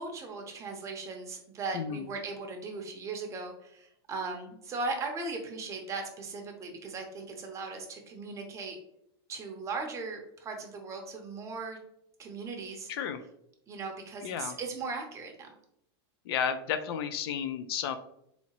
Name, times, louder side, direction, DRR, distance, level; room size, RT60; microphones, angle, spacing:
voice 1, 0.0-8.8 9.3-11.8 12.2-12.9 13.7-15.5, right 3 dB, 20° right, 3 dB, 0.7 m, -38 dB
voice 2, 1.7-2.1 12.9-13.2 14.2-14.6 16.3-18.0, left 8 dB, 65° left, 10 dB, 0.4 m, -32 dB
4.1 x 2.8 x 2.9 m, 0.75 s
supercardioid pair, 140°, 14 cm